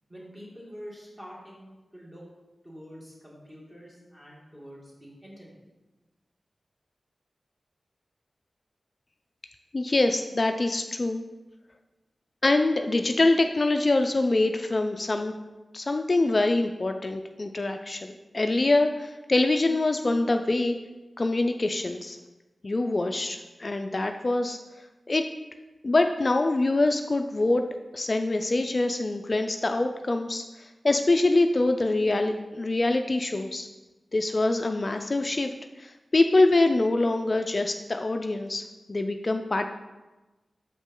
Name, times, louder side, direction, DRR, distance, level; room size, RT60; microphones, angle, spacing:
voice 1, 0.1-2.2 2.6-5.6, equal, 20° right, -5 dB, 2.2 m, -46 dB
voice 2, 9.7-11.2 12.4-15.3 15.7-20.8 21.2-22.2 22.6-24.6 25.1-25.2 25.8-27.7 27.9-33.7 34.1-35.5 35.8-39.7, left 2 dB, 45° left, 6 dB, 0.3 m, -24 dB
5.9 x 5.1 x 3.7 m, 1.1 s
wide cardioid pair, 70°, 0 cm